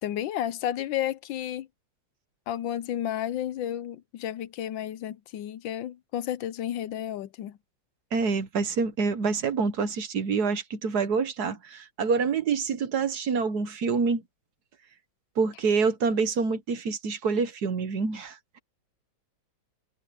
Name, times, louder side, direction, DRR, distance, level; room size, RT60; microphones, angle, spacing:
voice 1, 0.0-1.7 2.5-7.6, left 11 dB, 75° left, 1.4 m, -32 dB
voice 2, 8.1-14.2 15.4-18.6, right 5 dB, 55° right, 1.6 m, -27 dB
omnidirectional pair, 2.2 m